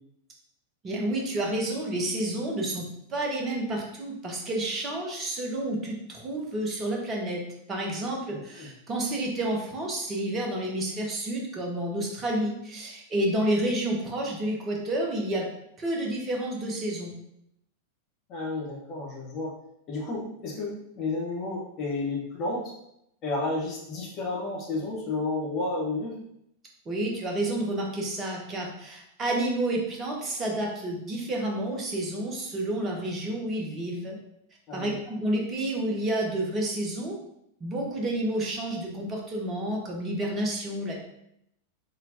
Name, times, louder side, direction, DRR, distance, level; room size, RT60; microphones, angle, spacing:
voice 1, 0.8-7.4 7.7-15.5 15.8-17.1 26.9-34.2 34.7-37.2 37.6-41.0, right 1 dB, 25° right, 0 dB, 1.1 m, -30 dB
voice 2, 8.3-8.7 18.3-19.5 19.9-22.7 23.2-26.1 34.7-35.0, left 2 dB, 35° left, -4 dB, 1.2 m, -31 dB
4.3 x 3.7 x 2.7 m, 0.77 s
figure-of-eight pair, 90°, 0 cm